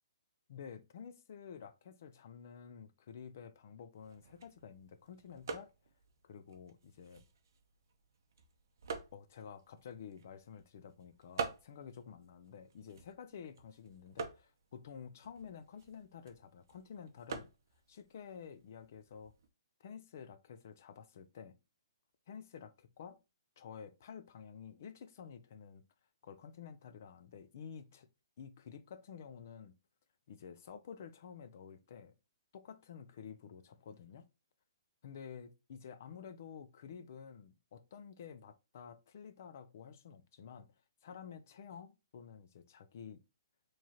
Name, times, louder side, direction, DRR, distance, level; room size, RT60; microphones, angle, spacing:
voice 1, 0.5-5.7 6.2-7.2 9.1-17.5 17.9-19.3 19.8-21.6 22.3-23.2 23.6-25.8 26.2-28.1 28.4-29.8 30.3-32.1 32.5-34.3 35.0-40.7 41.0-43.2, left 7 dB, 35° left, 0.4 m, -51 dB
sound 1, 3.9-19.5, right 5 dB, 45° right, 0.6 m, -48 dB
4.5 x 3.1 x 2.8 m
hypercardioid pair, 180°, 3 cm